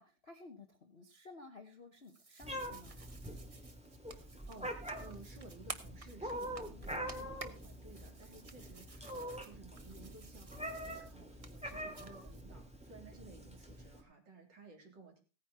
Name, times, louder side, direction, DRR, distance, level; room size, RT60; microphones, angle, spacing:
voice 1, 0.0-3.0 6.7-7.1, left 3 dB, 35° left, 4 dB, 1.1 m, -55 dB
sound 1, 1.9-12.4, right 3 dB, 35° right, 0.5 m, -53 dB
Meow, 2.4-14.0, equal, 5° right, 2.4 m, -45 dB
voice 2, 4.1-15.2, right 3 dB, 55° right, 2 dB, 4.2 m, -56 dB
16.5 x 9.7 x 4.2 m, 0.32 s
omnidirectional pair, 2.4 m